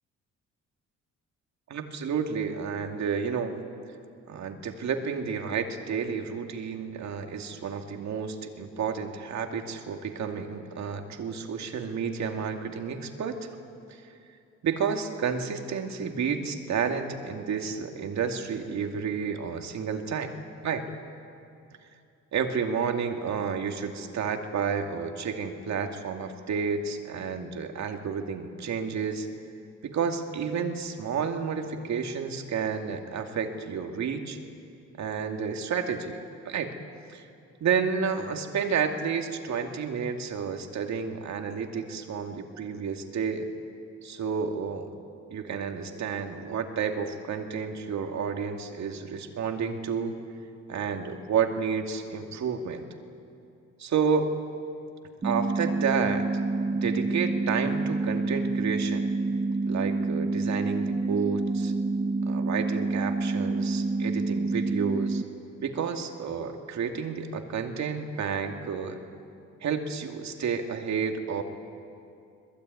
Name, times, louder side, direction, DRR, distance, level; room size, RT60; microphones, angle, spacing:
voice 1, 1.7-3.5 4.3-13.5 13.9-14.0 14.6-20.3 20.6-20.8 22.3-29.3 29.8-34.4 35.0-36.2 36.4-36.8 37.1-37.3 37.6-43.5 44.0-44.9 45.3-50.2 50.7-52.8 53.8-54.3 55.2-56.2 56.7-59.1 59.7-61.7 62.3-65.2 65.6-69.0 69.6-71.4, right 6 dB, 65° right, 4 dB, 2.4 m, -30 dB
sound 1, 55.2-65.2, right 3 dB, 20° right, 0.7 m, -28 dB
26.0 x 20.5 x 9.5 m, 2.5 s
cardioid pair, 90°, 30 cm